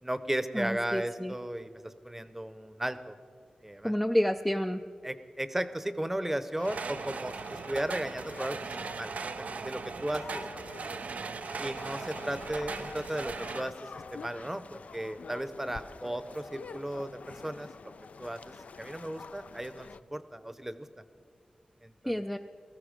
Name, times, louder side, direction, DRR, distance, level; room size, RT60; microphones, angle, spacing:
voice 1, 0.0-3.2 3.6-3.9 5.0-9.1 9.5-10.8 11.6-17.9 18.2-20.9 21.8-22.2, right 1 dB, 10° right, 12 dB, 0.7 m, -36 dB
voice 2, 0.5-1.3 3.8-4.8 22.1-22.4, equal, 5° left, 6 dB, 0.4 m, -29 dB
sound 1, 6.6-20.0, left 5 dB, 70° left, 0.4 m, -47 dB
sound 2, 6.6-13.6, right 5 dB, 75° right, 0.4 m, -39 dB
18.5 x 14.5 x 5.1 m, 2.2 s
wide cardioid pair, 90°, 2 cm